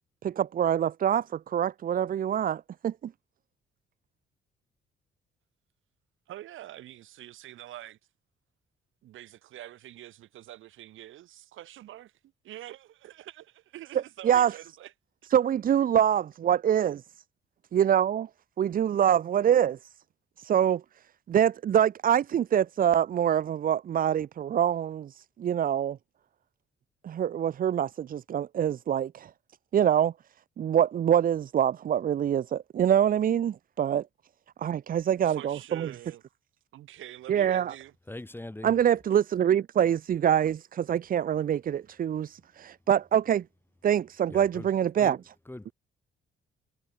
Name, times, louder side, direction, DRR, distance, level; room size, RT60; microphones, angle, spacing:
voice 1, 0.2-3.1 14.2-14.5 15.3-17.0 17.7-18.3 18.6-19.8 20.4-20.8 21.3-26.0 27.0-29.3 29.7-30.1 30.6-34.1 34.6-35.9 37.3-37.7 38.6-43.4 43.8-45.2, right 9 dB, 45° right, 0.5 m, -25 dB
voice 2, 6.3-8.0 9.0-14.9 35.2-36.2 36.7-38.0, right 13 dB, 80° right, 3.6 m, -46 dB
voice 3, 38.1-38.7 44.3-44.7 45.0-45.2 45.5-45.7, left 1 dB, 10° left, 2.1 m, -41 dB
cardioid pair, 90°, 20 cm